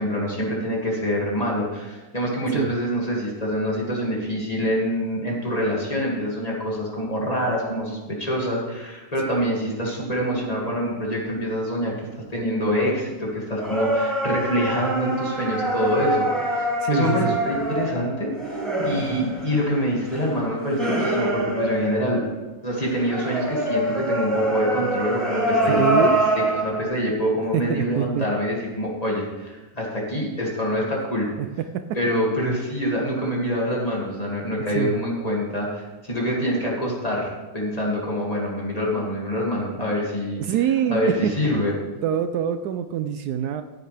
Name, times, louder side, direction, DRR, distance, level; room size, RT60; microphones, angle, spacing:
voice 1, 0.0-22.2 22.6-26.1 26.4-31.3 31.9-40.4 40.9-41.7, equal, 20° left, -3 dB, 2.3 m, -25 dB
sound 1, 13.6-22.4 22.8-26.8, right 1 dB, ahead, 4.2 m, -25 dB
voice 2, 16.8-17.3 25.7-26.2 27.5-28.3 31.4-31.5 31.7-31.8 34.7-35.0 40.4-41.3 42.0-43.6, right 10 dB, 75° right, 9 dB, 1.0 m, -24 dB
14.5 x 9.3 x 3.4 m, 1.2 s
omnidirectional pair, 1.8 m